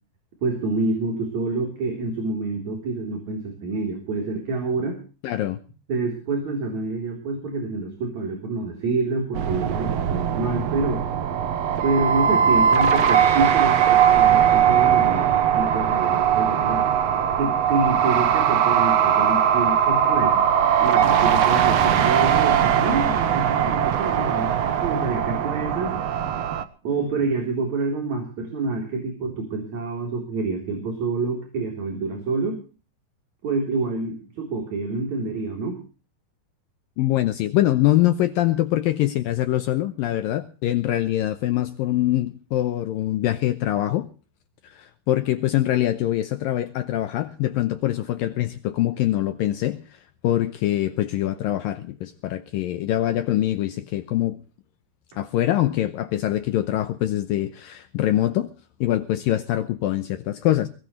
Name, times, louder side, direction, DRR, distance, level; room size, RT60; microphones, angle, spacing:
voice 1, 0.4-5.0 5.9-11.0 11.8-16.9 17.4-20.4 20.8-24.5 24.8-26.0 26.8-32.6 33.4-35.8, right 3 dB, 45° right, 4.8 m, -27 dB
voice 2, 5.2-5.6 37.0-44.1 44.6-54.4 55.2-58.5 58.8-60.7, left 14 dB, 75° left, 2.3 m, -24 dB
sound 1, 9.3-26.6, right 9 dB, 90° right, 1.4 m, -20 dB
21.5 x 17.5 x 3.2 m
omnidirectional pair, 4.8 m